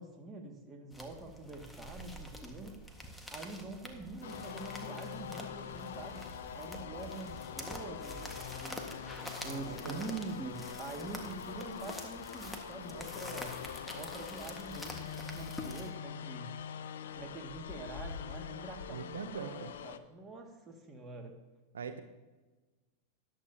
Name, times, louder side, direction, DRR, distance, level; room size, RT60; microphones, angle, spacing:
voice 1, 0.0-2.8 3.3-6.3 6.5-8.9 9.4-13.6 13.9-16.6 17.2-21.4, right 2 dB, 20° right, 1 dB, 2.1 m, -45 dB
sound 1, 0.9-15.9, equal, 5° left, 1.7 m, -47 dB
sound 2, 4.2-20.0, left 8 dB, 75° left, 0.6 m, -44 dB
voice 2, 9.2-10.1 18.9-19.7 21.7-22.0, right 7 dB, 85° right, 8 dB, 0.7 m, -43 dB
13.5 x 11.0 x 2.9 m, 1.2 s
hypercardioid pair, 100°, 0 cm